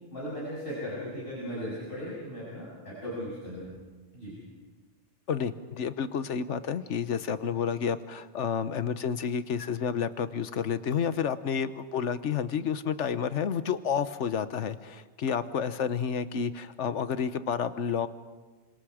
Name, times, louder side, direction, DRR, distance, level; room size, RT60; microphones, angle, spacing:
voice 1, 0.1-3.7 4.1-4.4, equal, 50° left, -8 dB, 7.7 m, -37 dB
voice 2, 5.3-18.1, left 7 dB, 85° left, 12 dB, 1.2 m, -30 dB
28.0 x 25.5 x 5.0 m, 1.3 s
omnidirectional pair, 1.2 m